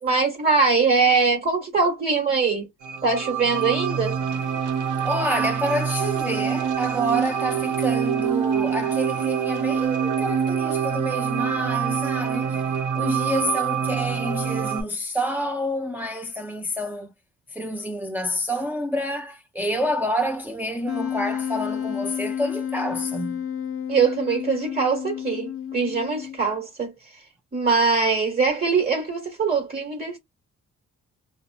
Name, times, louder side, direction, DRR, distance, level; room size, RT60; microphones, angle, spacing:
voice 1, 0.0-2.7 3.0-4.2 23.9-26.9 27.5-30.2, right 4 dB, 30° right, 1.3 m, -22 dB
sound 1, 2.8-14.8, right 7 dB, 85° right, 0.8 m, -25 dB
voice 2, 5.0-12.6 13.0-17.1 17.5-23.4, equal, 5° right, 0.5 m, -28 dB
Wind instrument woodwind instrument, 20.9-26.5, left 9 dB, 45° left, 0.6 m, -30 dB
2.8 x 2.1 x 2.3 m
cardioid pair, 90°, 30 cm